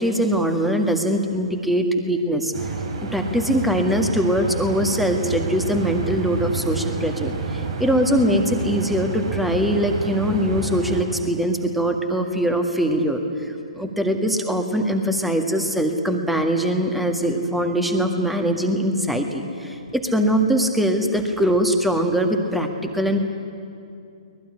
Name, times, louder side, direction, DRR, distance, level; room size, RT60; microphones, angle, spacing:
voice 1, 0.0-2.5 3.0-23.3, equal, ahead, 5 dB, 1.9 m, -22 dB
sound 1, 2.5-11.0, right 4 dB, 50° right, 4.1 m, -29 dB
23.0 x 20.5 x 9.9 m, 2.5 s
figure-of-eight pair, 125°, 4 cm